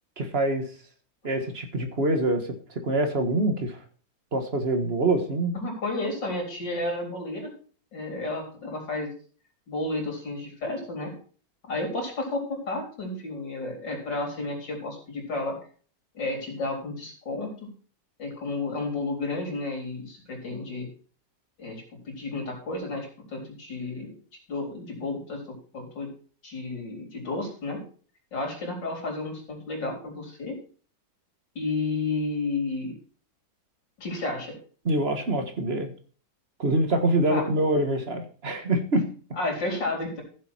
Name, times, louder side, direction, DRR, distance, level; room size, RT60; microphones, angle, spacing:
voice 1, 0.2-0.6 1.2-2.5 2.8-3.8 4.3-5.5 34.8-35.9 36.6-39.1, right 1 dB, 35° right, 7 dB, 1.7 m, -25 dB
voice 2, 5.5-7.5 7.9-9.1 9.7-11.1 11.7-15.6 16.1-17.7 18.2-20.9 21.6-24.1 24.5-26.1 26.4-27.8 28.3-30.6 31.6-32.9 34.0-34.6 37.3-37.4 39.4-40.2, left 2 dB, 85° left, 0 dB, 4.5 m, -32 dB
15.0 x 7.3 x 4.4 m, 0.41 s
omnidirectional pair, 1.9 m